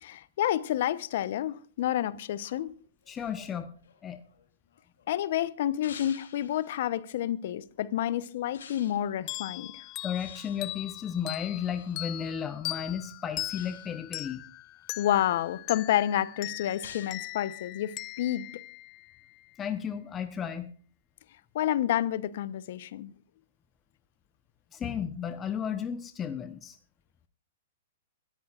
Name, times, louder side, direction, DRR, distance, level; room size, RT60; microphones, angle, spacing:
voice 1, 0.0-2.7 5.1-9.7 15.0-18.5 21.5-23.1, left 12 dB, 60° left, 0.9 m, -29 dB
sound 1, 2.4-5.1 5.8-6.8 8.5-9.1 10.2-12.0 13.4-14.1 14.6-15.6 16.8-17.2, left 7 dB, 80° left, 3.1 m, -51 dB
voice 2, 3.1-3.7 4.0-4.2 10.0-14.4 19.6-20.7 24.7-26.8, left 8 dB, 20° left, 0.9 m, -34 dB
sound 2, 9.3-19.5, left 18 dB, 35° left, 0.5 m, -40 dB
25.0 x 13.5 x 2.5 m
hypercardioid pair, 130°, 0 cm